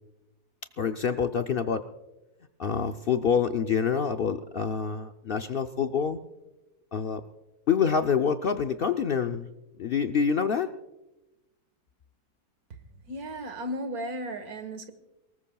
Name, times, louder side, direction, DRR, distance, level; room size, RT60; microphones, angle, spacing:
voice 1, 0.8-1.8 2.6-6.2 6.9-7.2 7.7-9.5 9.8-10.7, left 6 dB, 70° left, 7 dB, 0.5 m, -26 dB
voice 2, 13.1-14.9, right 1 dB, 70° right, 8 dB, 1.9 m, -35 dB
23.5 x 19.5 x 2.3 m, 1.0 s
omnidirectional pair, 1.6 m